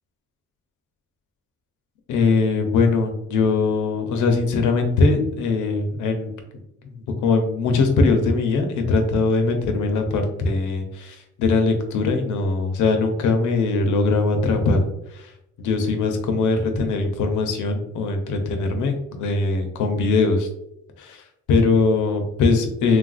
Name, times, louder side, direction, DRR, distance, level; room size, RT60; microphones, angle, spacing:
voice 1, 2.1-6.3 7.2-15.3 15.6-20.5 21.0-21.2 21.5-23.0, left 3 dB, 80° left, 4 dB, 0.7 m, -21 dB
3.3 x 2.4 x 2.4 m, 0.78 s
cardioid pair, 90°, 30 cm